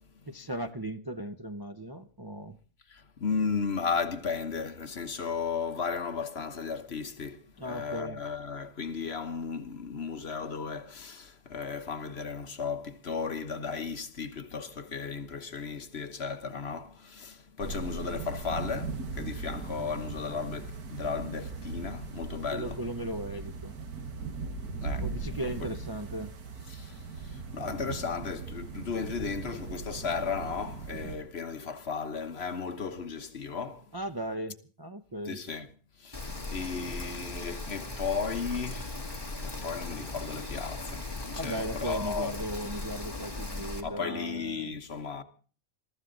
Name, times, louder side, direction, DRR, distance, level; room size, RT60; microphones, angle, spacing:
voice 1, 0.3-2.6 7.6-8.2 22.5-23.7 25.0-26.3 33.9-35.4 41.3-44.8, right 1 dB, 25° right, 0.5 m, -37 dB
voice 2, 2.9-22.8 24.8-25.1 25.6-25.7 26.7-33.9 35.3-35.7 36.0-39.1 39.4-42.3 43.8-45.2, left 5 dB, 45° left, 1.3 m, -35 dB
sound 1, 17.6-31.2, right 4 dB, 85° right, 2.1 m, -39 dB
Rain, 36.1-43.8, left 2 dB, 15° left, 2.2 m, -38 dB
22.5 x 14.0 x 3.9 m
omnidirectional pair, 1.6 m